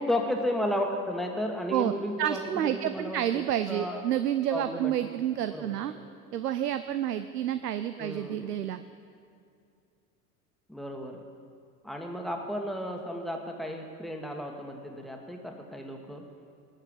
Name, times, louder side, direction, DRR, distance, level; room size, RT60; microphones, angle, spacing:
voice 1, 0.0-4.0 4.5-4.9 5.5-6.0 8.0-8.5 10.7-11.2 11.8-16.2, left 1 dB, ahead, 2 dB, 1.6 m, -33 dB
voice 2, 2.2-5.9 6.3-8.8, right 11 dB, 75° right, 11 dB, 0.6 m, -29 dB
19.0 x 6.6 x 7.9 m, 2.4 s
figure-of-eight pair, 75°, 48 cm